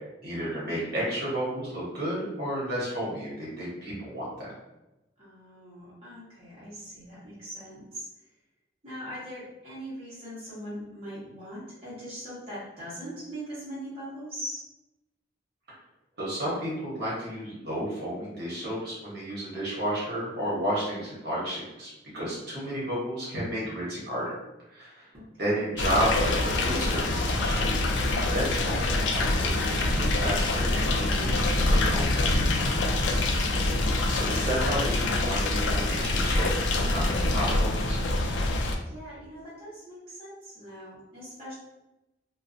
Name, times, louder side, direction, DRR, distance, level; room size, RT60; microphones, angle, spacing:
voice 1, 0.2-4.3 16.2-24.3 24.7-25.1 25.4-32.0 32.9-33.1 34.1-36.5 36.7-38.0, equal, 55° right, -7 dB, 1.0 m, -32 dB
voice 2, 5.2-8.1 8.8-14.6 25.1-25.4 32.9-33.7 38.8-41.5, equal, 30° right, -10 dB, 0.9 m, -41 dB
sound 1, 25.8-38.8, left 2 dB, 70° left, 0.3 m, -25 dB
2.5 x 2.2 x 2.5 m, 0.97 s
head